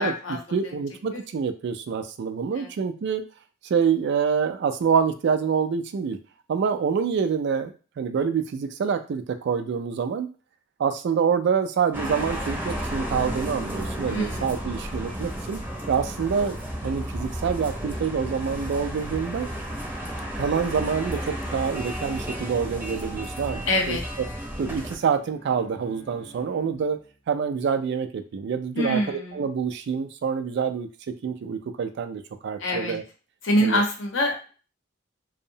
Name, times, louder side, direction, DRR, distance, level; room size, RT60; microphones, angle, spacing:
voice 1, 0.0-0.4 1.1-1.2 2.6-2.7 14.1-14.5 23.7-24.0 28.8-29.4 32.6-33.0 33.4-34.5, left 1 dB, 70° left, 2 dB, 0.7 m, -25 dB
voice 2, 0.5-3.2 3.6-6.2 6.5-10.3 10.8-15.6 15.9-16.6 16.8-19.5 20.4-24.0 24.6-27.0 27.3-30.9 31.2-33.0 33.6-33.8, right 6 dB, 60° right, 8 dB, 0.3 m, -26 dB
sound 1, 11.9-25.0, equal, 10° right, 0.6 m, -33 dB
Bowed string instrument, 23.7-27.3, right 1 dB, 30° left, 0.6 m, -50 dB
2.7 x 2.0 x 2.7 m, 0.36 s
head